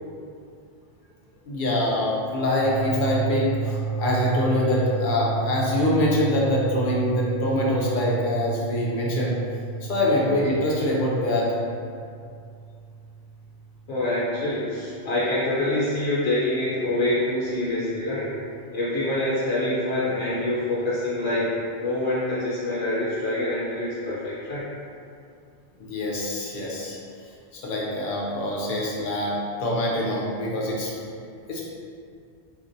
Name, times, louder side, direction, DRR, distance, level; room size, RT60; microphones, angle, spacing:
voice 1, 1.4-9.3 9.8-11.5 25.8-27.0 27.5-30.9 31.5-31.6, left 1 dB, 55° left, -4 dB, 0.7 m, -24 dB
sound 1, 2.5-14.4, right 6 dB, 30° right, 0.7 m, -32 dB
voice 2, 13.9-18.3 18.7-21.5 21.7-24.6, left 1 dB, 90° left, -9 dB, 1.1 m, -26 dB
4.3 x 2.5 x 2.6 m, 2.4 s
omnidirectional pair, 1.2 m